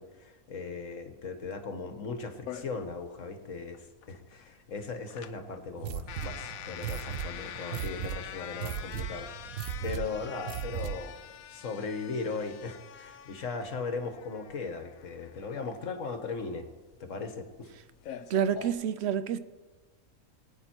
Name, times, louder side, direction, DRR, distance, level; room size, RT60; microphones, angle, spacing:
voice 1, 0.0-9.3 9.8-11.2 11.5-16.7 17.0-17.7, left 4 dB, 65° left, 1.5 m, -38 dB
sound 1, 2.5-18.7, left 10 dB, 80° left, 1.1 m, -45 dB
sound 2, 5.8-11.2, right 10 dB, 85° right, 1.1 m, -37 dB
voice 2, 18.3-19.4, right 8 dB, 60° right, 0.7 m, -28 dB
19.5 x 9.3 x 4.4 m
omnidirectional pair, 1.5 m